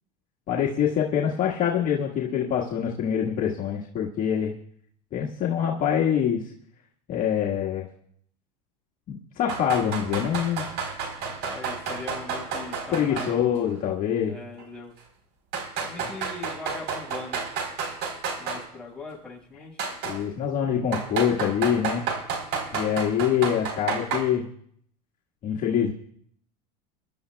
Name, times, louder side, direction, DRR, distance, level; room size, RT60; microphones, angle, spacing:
voice 1, 0.5-4.5 5.1-6.5 7.1-7.9 9.1-10.6 12.9-14.4 16.0-16.1 20.0-22.1 22.7-24.5 25.4-25.9, left 9 dB, 40° left, -3 dB, 1.7 m, -25 dB
sound 1, 9.5-13.4 13.6-13.7 14.6-14.7 15.5-18.6 19.8-20.2 20.9-24.2, right 5 dB, 55° right, 3.9 m, -31 dB
voice 2, 11.2-13.5 14.2-14.9 15.8-17.4 18.4-19.8, left 3 dB, 5° left, -3 dB, 5.4 m, -40 dB
24.5 x 12.0 x 2.3 m, 0.63 s
supercardioid pair, 110°, 21 cm